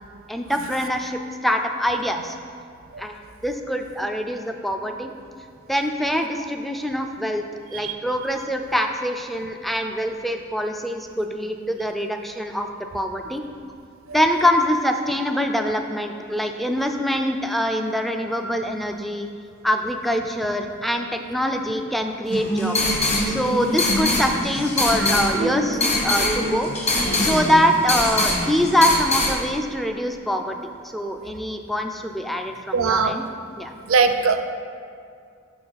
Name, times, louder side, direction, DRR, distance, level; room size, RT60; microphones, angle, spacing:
voice 1, 0.3-2.4 3.0-3.1 3.4-5.1 5.7-7.4 7.7-12.7 12.9-13.4 14.1-19.3 19.6-23.0 23.3-26.7 27.2-30.5 30.8-33.2 33.6-33.7, equal, ahead, 4 dB, 0.3 m, -24 dB
sound 1, 22.3-29.3, left 1 dB, 30° left, 1.1 m, -23 dB
voice 2, 32.7-33.1 33.9-34.4, right 5 dB, 70° right, 7 dB, 0.5 m, -20 dB
6.8 x 5.8 x 4.0 m, 2.3 s
head